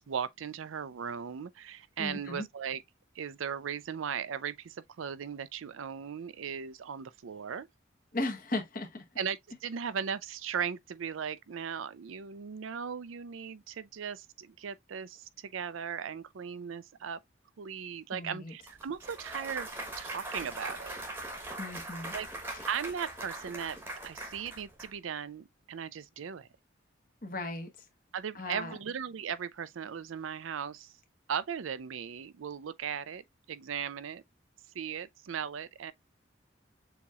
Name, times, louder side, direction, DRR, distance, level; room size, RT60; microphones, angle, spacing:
voice 1, 0.0-2.8 3.2-7.7 9.2-17.2 17.6-19.7 20.0-21.0 22.1-22.3 22.7-23.8 24.0-26.5 28.1-30.9 31.3-33.2 33.5-34.2 34.7-35.9, right 7 dB, 90° right, 0.5 m, -37 dB
voice 2, 2.0-2.4 8.1-9.0 18.1-18.5 21.6-22.1 27.2-27.7 28.3-28.7, left 2 dB, 45° left, 1.2 m, -36 dB
Clapping / Cheering / Applause, 18.7-24.9, right 1 dB, 10° right, 1.0 m, -41 dB
7.0 x 2.9 x 2.4 m
head